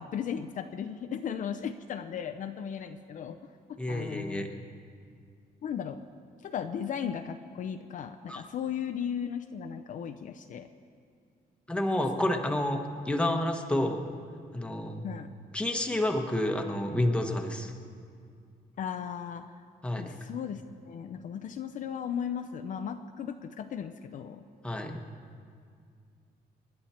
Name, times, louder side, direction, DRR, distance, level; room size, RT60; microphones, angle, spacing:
voice 1, 0.0-3.4 3.7-4.5 5.6-6.0 6.4-10.7 12.1-12.2 15.0-15.3 18.8-19.5 20.0-24.4, left 8 dB, 50° left, 7 dB, 0.6 m, -36 dB
voice 2, 3.8-4.5 8.3-8.4 11.7-14.1 14.5-15.0 15.5-17.7 19.8-20.2 24.6-25.0, left 1 dB, 5° left, 3 dB, 1.1 m, -29 dB
28.5 x 10.5 x 4.4 m, 2.3 s
cardioid pair, 175°, 17 cm